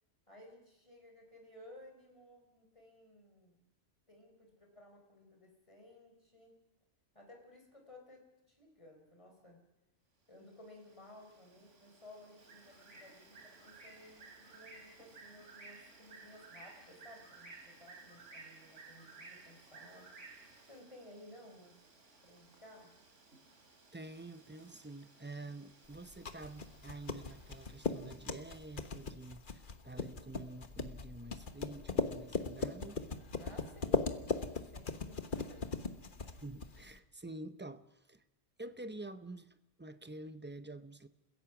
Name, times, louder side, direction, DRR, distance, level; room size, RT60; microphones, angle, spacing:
voice 1, 0.3-3.6 4.1-6.5 7.1-9.6 10.3-20.2 20.7-21.7 22.2-22.9 33.4-35.6, left 1 dB, 25° left, 4.4 m, -57 dB
Bird, 10.4-29.1, right 3 dB, 70° right, 3.3 m, -57 dB
voice 2, 23.9-33.0 36.4-38.2 38.6-41.1, right 2 dB, 10° right, 0.6 m, -48 dB
sound 1, 25.9-37.0, left 4 dB, 40° left, 1.3 m, -38 dB
29.5 x 16.0 x 6.1 m
omnidirectional pair, 1.3 m